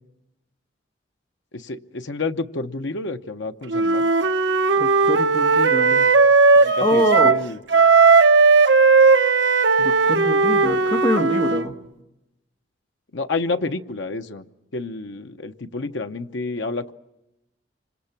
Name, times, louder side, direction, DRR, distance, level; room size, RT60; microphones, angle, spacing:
voice 1, 1.5-4.1 6.6-7.6 13.1-14.4 14.7-16.9, left 3 dB, 80° left, 7 dB, 0.9 m, -29 dB
Wind instrument woodwind instrument, 3.7-7.4 7.7-11.7, right 4 dB, 75° right, 0.8 m, -16 dB
voice 2, 4.8-6.1 6.8-7.4 9.8-11.8, left 1 dB, 25° left, 1 dB, 1.8 m, -25 dB
26.0 x 25.0 x 5.9 m, 0.92 s
head